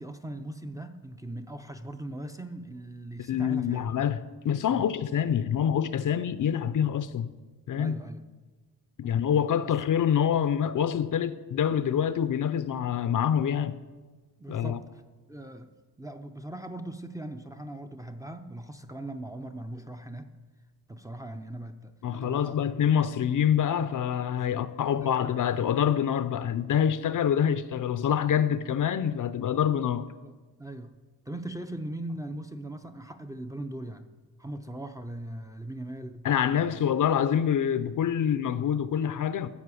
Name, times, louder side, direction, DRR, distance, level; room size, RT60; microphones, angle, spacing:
voice 1, 0.0-3.9 4.7-4.9 7.7-8.2 9.0-9.2 14.4-15.0 15.3-15.7 16.0-20.3 20.9-22.5 24.3-24.7 25.0-25.3 27.0-27.2 30.2-31.0 31.3-34.1 34.4-36.3 36.6-36.8, right 1 dB, 10° right, 0.5 m, -40 dB
voice 2, 3.3-7.3 7.7-8.0 9.0-13.7 14.5-14.8 22.0-30.1 36.2-39.5, left 9 dB, 55° left, 0.5 m, -26 dB
12.5 x 5.4 x 8.4 m
wide cardioid pair, 135°, 39 cm